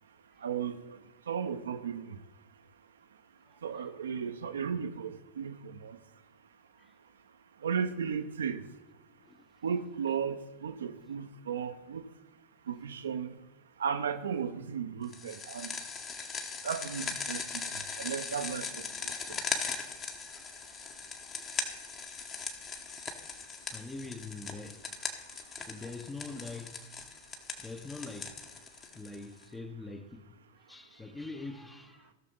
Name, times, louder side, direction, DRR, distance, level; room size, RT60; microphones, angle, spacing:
voice 1, 0.4-1.0 1.3-2.2 3.6-6.0 7.6-8.6 9.6-12.1 12.7-13.4 13.8-15.7 16.6-17.4 18.0-19.4, right 7 dB, 65° right, 0.6 m, -35 dB
sound 1, 15.1-29.4, left 5 dB, 25° left, 1.1 m, -39 dB
voice 2, 23.7-24.8 25.7-26.8 27.6-28.4 28.9-30.2 30.7-32.1, left 3 dB, 10° left, 0.8 m, -43 dB
16.0 x 6.6 x 4.0 m
figure-of-eight pair, 90°, 0 cm